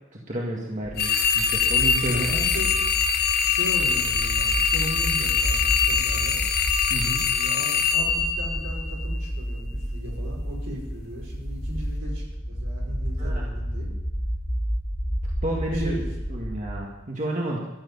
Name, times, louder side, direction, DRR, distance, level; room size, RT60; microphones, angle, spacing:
voice 1, 0.3-2.3 6.9-7.2 13.2-13.4 15.4-16.0 16.3-17.6, right 1 dB, 35° right, -3 dB, 1.9 m, -30 dB
sound 1, 0.8-16.7, equal, 5° left, 2.0 m, -31 dB
sound 2, 1.0-9.2, left 6 dB, 45° left, 0.8 m, -23 dB
voice 2, 2.0-2.8 3.4-6.4 7.3-13.9 15.7-16.0, equal, 75° right, -2 dB, 5.5 m, -37 dB
13.5 x 8.0 x 9.9 m, 1.0 s
head